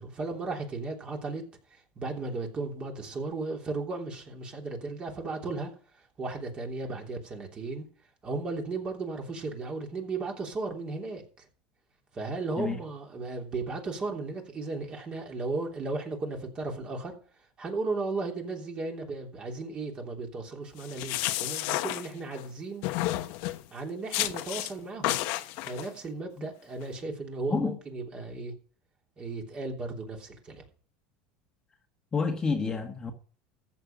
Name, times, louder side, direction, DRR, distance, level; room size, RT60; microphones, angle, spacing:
voice 1, 0.0-1.4 1.7-5.7 6.2-7.9 8.2-11.4 12.1-17.1 17.6-22.9 23.7-25.2 25.7-28.5 29.2-30.6, right 3 dB, 25° right, 3.2 m, -35 dB
sound 1, 20.8-22.5 22.8-23.6 24.1-24.7 25.0-25.9, left 16 dB, 60° left, 1.0 m, -31 dB
voice 2, 32.1-33.1, left 5 dB, 20° left, 1.5 m, -29 dB
14.5 x 7.7 x 5.2 m
supercardioid pair, 135°, 4 cm